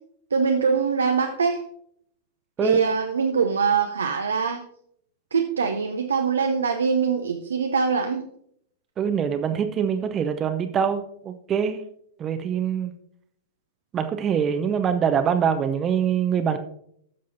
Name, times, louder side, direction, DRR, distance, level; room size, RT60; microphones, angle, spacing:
voice 1, 0.3-1.6 2.6-4.6 5.3-8.2, right 5 dB, 75° right, 5 dB, 0.6 m, -23 dB
voice 2, 9.0-11.8 12.2-12.9 13.9-16.6, right 7 dB, 25° right, 8 dB, 0.7 m, -24 dB
15.5 x 6.4 x 2.7 m, 0.69 s
figure-of-eight pair, 95°, 0 cm